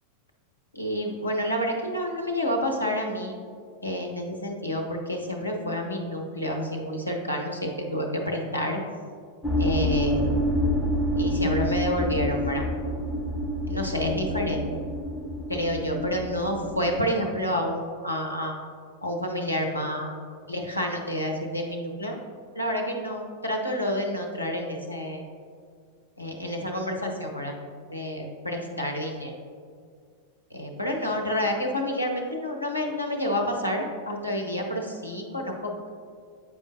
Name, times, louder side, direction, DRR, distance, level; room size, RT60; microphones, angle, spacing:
voice 1, 0.7-3.3 3.8-8.8 9.6-10.3 11.1-12.7 13.7-14.8 15.5-18.5 19.0-20.1 20.5-22.2 22.5-25.2 26.2-27.6 27.9-29.3 30.5-35.9, equal, 85° left, 2 dB, 0.7 m, -29 dB
sound 1, 9.4-17.0, equal, 5° left, 1.0 m, -27 dB
8.3 x 5.0 x 2.7 m, 2.1 s
figure-of-eight pair, 90°, 0 cm